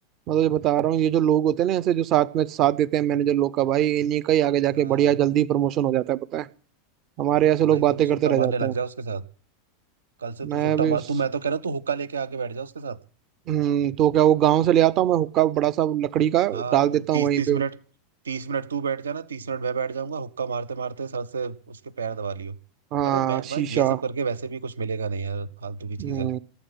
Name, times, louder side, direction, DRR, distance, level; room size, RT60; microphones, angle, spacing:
voice 1, 0.3-6.5 7.2-8.7 10.4-11.0 13.5-17.6 22.9-24.0 26.0-26.4, right 11 dB, 40° right, 21 dB, 0.7 m, -22 dB
voice 2, 4.7-5.2 7.7-9.2 10.2-13.0 16.5-17.8 18.2-22.6 23.0-26.3, right 5 dB, 70° right, 17 dB, 0.8 m, -30 dB
18.0 x 8.3 x 7.5 m, 0.41 s
figure-of-eight pair, 85°, 0 cm